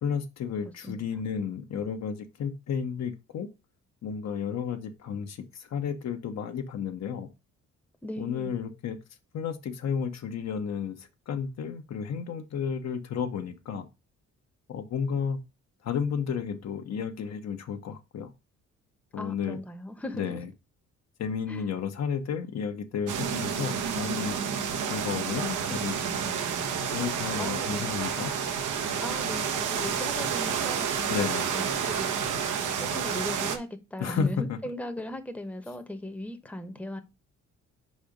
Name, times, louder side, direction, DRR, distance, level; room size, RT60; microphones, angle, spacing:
voice 1, 0.0-3.5 4.0-7.3 8.2-9.0 9.3-13.9 14.7-15.4 15.8-18.3 19.1-19.6 20.1-20.5 21.2-24.5 24.8-26.4 26.9-28.3 31.1-31.5 34.0-34.6, left 7 dB, 60° left, 1.0 m, -32 dB
voice 2, 8.0-8.5 19.2-20.4 21.5-21.7 27.4-27.9 29.0-32.3 32.8-37.0, left 1 dB, 5° left, 0.9 m, -38 dB
sound 1, 23.1-33.6, right 7 dB, 80° right, 1.1 m, -30 dB
5.0 x 4.2 x 5.0 m
cardioid pair, 90°, 30 cm